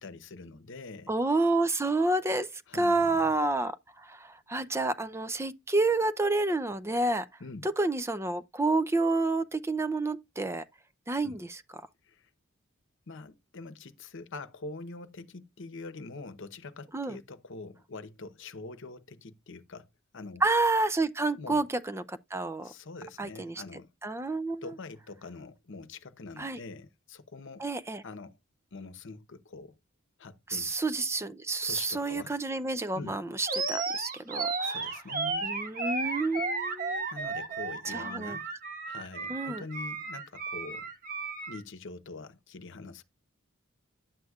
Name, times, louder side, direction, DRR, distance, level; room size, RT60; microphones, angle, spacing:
voice 1, 0.0-1.1 2.7-3.4 7.4-7.7 11.2-11.4 12.0-12.3 13.1-19.9 20.1-20.4 21.4-21.6 22.6-23.9 24.6-27.6 28.0-28.4 28.7-29.8 30.2-30.8 31.6-32.3 32.9-33.2 34.6-35.5 37.1-38.5 38.8-40.9 41.5-43.0, left 3 dB, 65° left, 0.9 m, -44 dB
voice 2, 1.1-7.3 7.6-10.6 11.1-11.6 16.9-17.2 20.4-22.7 23.2-23.5 24.0-24.6 26.4-26.6 27.6-28.0 30.5-34.8 35.4-37.1 37.9-38.4 39.3-39.6, right 2 dB, 15° right, 0.5 m, -29 dB
Animal, 33.4-41.6, right 3 dB, 45° right, 1.5 m, -34 dB
10.5 x 7.9 x 2.4 m
head